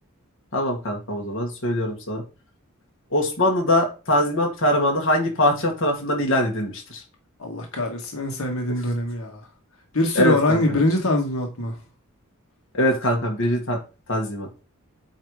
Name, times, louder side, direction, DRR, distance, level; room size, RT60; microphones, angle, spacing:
voice 1, 0.5-2.2 3.1-7.0 10.2-10.8 12.7-13.8 14.1-14.5, left 1 dB, 60° left, 1.7 m, -22 dB
voice 2, 7.4-9.4 9.9-11.7, left 1 dB, 80° left, 1.6 m, -23 dB
8.6 x 2.9 x 4.8 m
head